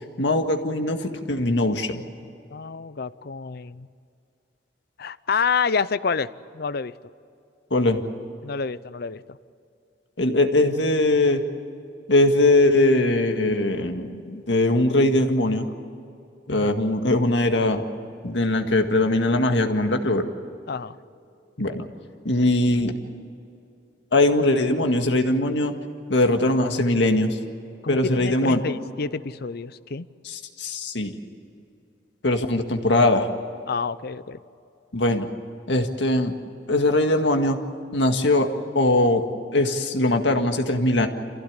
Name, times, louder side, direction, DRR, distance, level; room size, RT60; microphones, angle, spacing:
voice 1, 0.2-2.0 7.7-8.0 10.2-11.4 12.1-15.7 16.5-17.8 18.2-20.3 21.6-21.9 22.3-23.0 24.1-25.7 26.1-27.4 27.9-28.6 30.3-31.2 32.2-33.3 34.9-35.3 35.7-36.3 36.7-37.6 37.9-38.5 38.8-39.2 39.5-41.1, left 2 dB, 80° left, 5 dB, 1.9 m, -21 dB
voice 2, 2.5-3.9 5.0-6.3 6.5-6.9 8.4-9.2 16.5-16.7 20.7-21.0 27.8-30.1 33.7-34.4, left 5 dB, 60° left, 16 dB, 0.6 m, -28 dB
26.5 x 16.0 x 9.7 m, 2.6 s
head